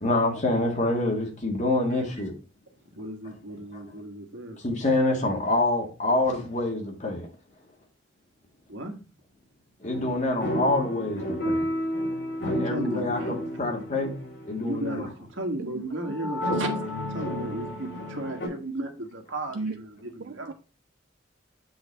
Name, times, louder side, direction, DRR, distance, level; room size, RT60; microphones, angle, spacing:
voice 1, 0.0-2.3 3.2-3.3 3.7-3.8 4.6-7.3 9.8-11.6 12.4-14.1 14.5-15.1, left 2 dB, 40° left, 1.8 m, -26 dB
voice 2, 3.0-4.6 8.7-8.9 12.6-13.3 14.6-20.5, right 1 dB, 90° right, 1.6 m, -35 dB
sound 1, 9.8-14.9 16.0-18.5, equal, 85° left, 2.9 m, -31 dB
voice 3, 16.2-16.7 19.5-19.8 20.2-20.5, right 3 dB, 55° right, 0.4 m, -35 dB
7.6 x 4.0 x 4.1 m
head